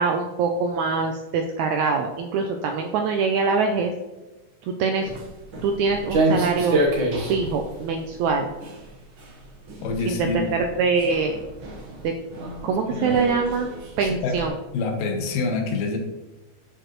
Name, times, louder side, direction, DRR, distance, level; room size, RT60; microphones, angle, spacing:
voice 1, 0.0-3.9 4.8-5.1 5.6-6.8 7.3-8.5 10.1-10.4 10.8-11.4 12.0-12.1 12.6-14.5, right 4 dB, 80° right, 4 dB, 1.7 m, -23 dB
Walk footsteps, 5.0-14.5, right 2 dB, 65° right, 1.3 m, -29 dB
voice 2, 9.8-10.5 12.9-13.2 14.0-14.4 14.7-16.0, left 4 dB, 80° left, 3 dB, 2.8 m, -26 dB
12.5 x 4.9 x 3.0 m, 1.1 s
omnidirectional pair, 3.9 m